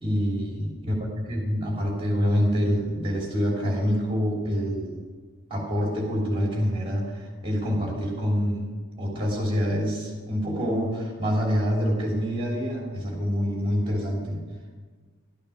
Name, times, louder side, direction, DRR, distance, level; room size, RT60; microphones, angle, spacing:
voice 1, 0.0-5.0 5.5-8.7 9.0-14.4, equal, 25° right, -2 dB, 3.1 m, -26 dB
13.0 x 8.8 x 5.8 m, 1.5 s
head